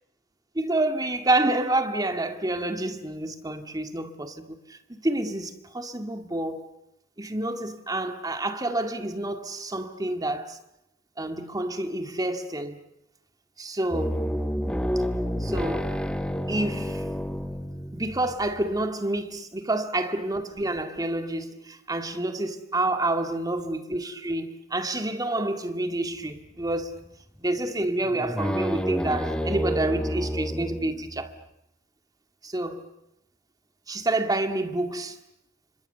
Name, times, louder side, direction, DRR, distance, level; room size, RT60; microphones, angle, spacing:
voice 1, 0.5-6.7 7.2-10.6 11.2-12.8 13.6-14.2 15.4-16.0 16.5-17.1 17.9-27.0 27.4-31.3 32.4-32.9 33.9-35.2, right 2 dB, 20° right, 2.0 m, -28 dB
sound 1, 13.9-18.9 26.4-27.1 27.4-27.5 28.0-31.4, equal, 5° left, 1.3 m, -30 dB
29.5 x 25.5 x 6.8 m
head